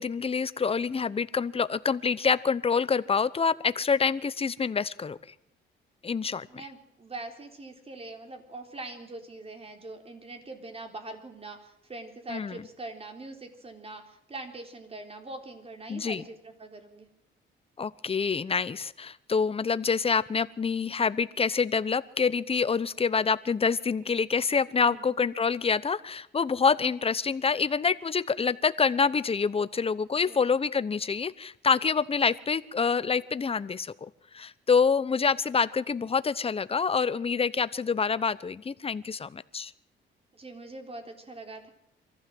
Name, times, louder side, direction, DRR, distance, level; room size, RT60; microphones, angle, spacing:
voice 1, 0.0-5.2 6.0-6.5 12.3-12.6 15.9-16.2 17.8-39.7, left 5 dB, 30° left, 16 dB, 0.9 m, -26 dB
voice 2, 6.5-17.1 24.8-25.2 30.3-30.4 40.3-41.7, right 2 dB, 30° right, 5 dB, 3.9 m, -43 dB
23.5 x 15.0 x 7.8 m, 0.76 s
cardioid pair, 90°, 20 cm